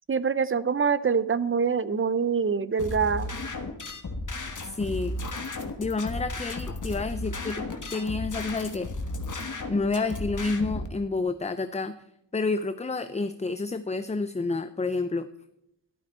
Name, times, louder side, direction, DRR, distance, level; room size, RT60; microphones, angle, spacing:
voice 1, 0.1-3.4, right 6 dB, 30° right, 16 dB, 0.6 m, -25 dB
sound 1, 2.8-10.9, left 2 dB, 45° left, 1.5 m, -34 dB
voice 2, 4.6-5.2 5.8-7.6 7.9-8.9 9.7-11.9 12.3-15.3, left 3 dB, 15° left, 11 dB, 0.4 m, -29 dB
13.0 x 11.5 x 4.4 m, 0.83 s
wide cardioid pair, 100°, 43 cm